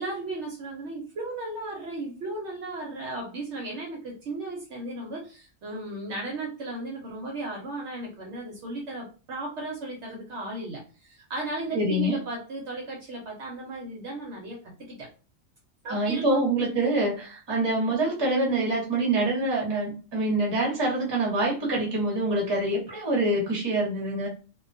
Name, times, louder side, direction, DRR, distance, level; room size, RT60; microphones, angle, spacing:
voice 1, 0.0-15.1 15.8-16.5, right 2 dB, 65° right, -1 dB, 0.8 m, -35 dB
voice 2, 11.7-12.2 15.9-24.3, right 2 dB, 25° right, -2 dB, 0.7 m, -25 dB
2.3 x 2.2 x 2.5 m, 0.35 s
omnidirectional pair, 1.4 m